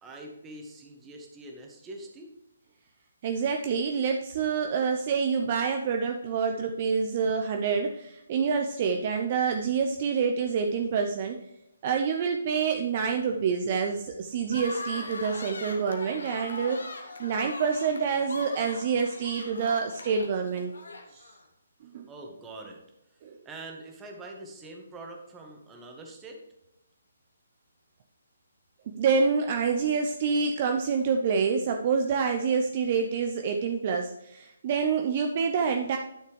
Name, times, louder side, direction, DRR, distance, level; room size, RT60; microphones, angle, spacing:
voice 1, 0.0-2.3 14.3-14.4 22.1-22.8 23.4-26.5, right 2 dB, 15° right, 1 dB, 1.6 m, -44 dB
voice 2, 3.2-11.4 11.8-20.7 21.1-21.3 21.8-22.1 23.2-23.3 29.0-36.0, right 5 dB, 35° right, 4 dB, 0.7 m, -27 dB
sound 1, 14.5-21.4, left 2 dB, 70° left, 1.4 m, -40 dB
11.5 x 6.6 x 3.3 m, 0.87 s
figure-of-eight pair, 135°, 0 cm